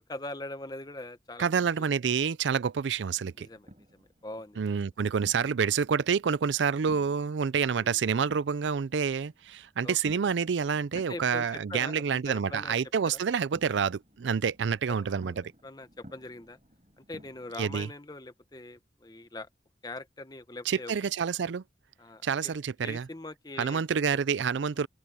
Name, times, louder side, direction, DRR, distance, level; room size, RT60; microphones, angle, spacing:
voice 1, 0.0-1.6 3.4-4.8 7.7-8.0 9.8-10.2 11.1-12.7 13.0-13.2 14.9-15.4 15.6-16.6 17.0-19.5 19.8-20.9 22.0-22.5 22.8-23.8 24.8-24.9, left 2 dB, 20° left, 0.9 m, -42 dB
voice 2, 1.4-3.5 4.6-15.5 17.6-17.9 20.7-21.6 22.2-23.1 23.6-24.9, right 6 dB, 90° right, 0.4 m, -28 dB
sound 1, 3.0-17.5, equal, 40° right, 4.8 m, -56 dB
open air
head